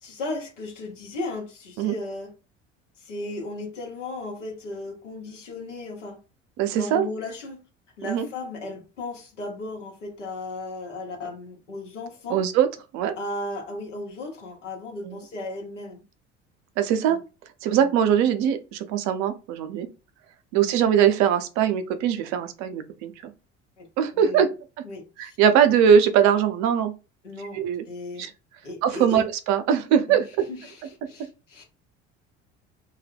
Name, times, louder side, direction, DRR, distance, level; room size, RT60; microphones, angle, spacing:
voice 1, 0.0-2.3 3.0-6.2 6.7-7.6 8.0-12.4 13.2-16.0 17.1-17.2 17.8-17.9 20.5-20.7 23.8-23.9 24.1-24.5 24.8-25.4 27.2-28.3 28.6-29.2 30.1-30.2 30.5-30.8 31.1-31.6, left 2 dB, 85° left, 0.9 m, -35 dB
voice 2, 6.6-7.1 8.0-8.3 12.3-12.7 12.9-13.1 15.0-15.2 16.8-17.2 17.6-19.9 20.5-23.3 24.0-24.5 25.2-26.9 27.5-27.8 28.2-28.3 28.8-30.2, right 8 dB, 50° right, 0.5 m, -21 dB
2.3 x 2.0 x 3.4 m
figure-of-eight pair, 60°, 36 cm